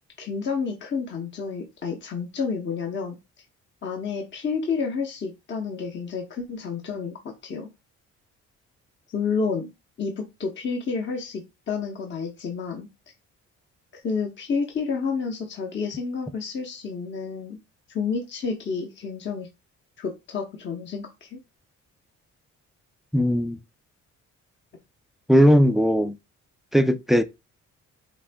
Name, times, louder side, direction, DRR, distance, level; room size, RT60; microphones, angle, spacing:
voice 1, 0.2-3.2 3.8-7.7 9.1-9.7 10.0-12.9 14.0-17.6 17.9-19.5 20.0-21.4, left 5 dB, 40° left, 0.8 m, -30 dB
voice 2, 23.1-23.6 25.3-26.2 26.7-27.2, equal, ahead, 0.3 m, -18 dB
6.1 x 2.6 x 2.2 m
cardioid pair, 90°, 30 cm